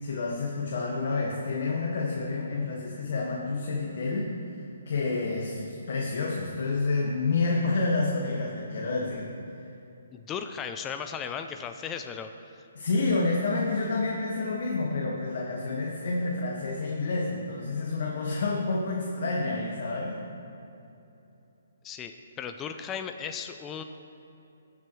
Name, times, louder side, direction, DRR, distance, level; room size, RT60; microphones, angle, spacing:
voice 1, 0.0-4.4 4.9-9.6 12.7-20.2, left 3 dB, 60° left, -2 dB, 1.5 m, -29 dB
voice 2, 10.1-12.3 21.8-23.8, left 7 dB, 15° left, 7 dB, 0.4 m, -36 dB
20.0 x 7.7 x 3.1 m, 2.9 s
hypercardioid pair, 160°, 0 cm